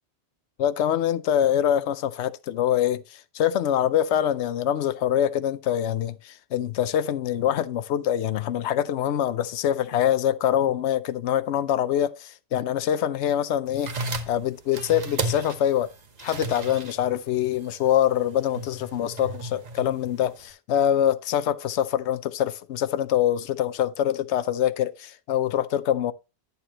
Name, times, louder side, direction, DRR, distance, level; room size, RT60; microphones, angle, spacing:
voice 1, 0.6-13.9 14.3-15.9 16.2-26.1, left 10 dB, 75° left, 0.9 m, -24 dB
sound 1, 13.7-20.5, right 2 dB, 40° right, 1.0 m, -35 dB
10.5 x 7.0 x 2.9 m
omnidirectional pair, 1.2 m